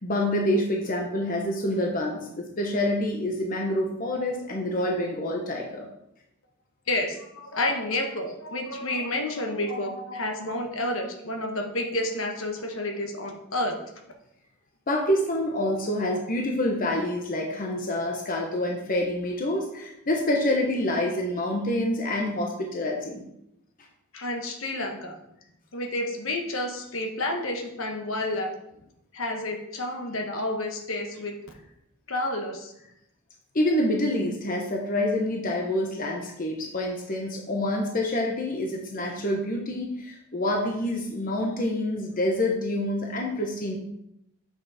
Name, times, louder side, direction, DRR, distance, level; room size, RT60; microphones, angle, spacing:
voice 1, 0.0-5.9 14.9-23.2 33.5-43.8, left 1 dB, 40° left, 0 dB, 1.0 m, -27 dB
voice 2, 6.9-13.8 24.1-25.2 25.7-28.5 29.1-31.3 32.1-32.7, left 1 dB, 65° left, 3 dB, 1.3 m, -30 dB
7.4 x 6.3 x 4.2 m, 0.80 s
head